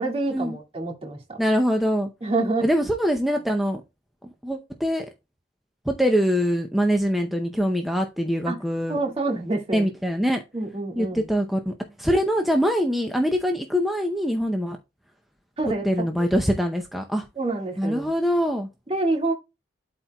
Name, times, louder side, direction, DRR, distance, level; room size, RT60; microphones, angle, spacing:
voice 1, 0.0-1.4 2.2-2.7 8.5-8.6 8.9-9.9 10.5-11.3 15.6-15.8 17.4-18.1 18.9-19.3, right 2 dB, 35° right, 2.0 m, -27 dB
voice 2, 1.4-2.1 2.6-3.8 4.4-5.1 5.9-9.0 9.7-10.4 11.0-14.8 15.8-17.3 17.8-18.7, equal, ahead, 0.6 m, -23 dB
12.0 x 4.3 x 2.3 m
head